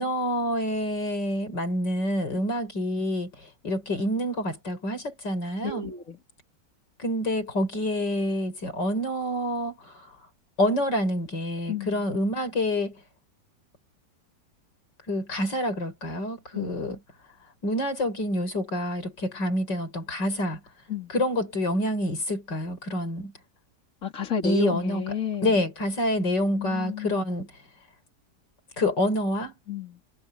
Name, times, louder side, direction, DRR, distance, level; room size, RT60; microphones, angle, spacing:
voice 1, 0.0-3.3 3.6-5.9 7.0-9.9 10.6-13.0 15.1-17.0 17.6-20.6 21.1-23.3 24.4-25.0 25.4-27.5 28.8-29.5, left 1 dB, 90° left, 6.7 m, -27 dB
voice 2, 5.6-6.2 11.7-12.1 16.5-16.8 20.9-21.1 24.0-25.6 26.5-27.2 29.7-30.0, left 5 dB, 50° left, 3.1 m, -31 dB
omnidirectional pair, 1.9 m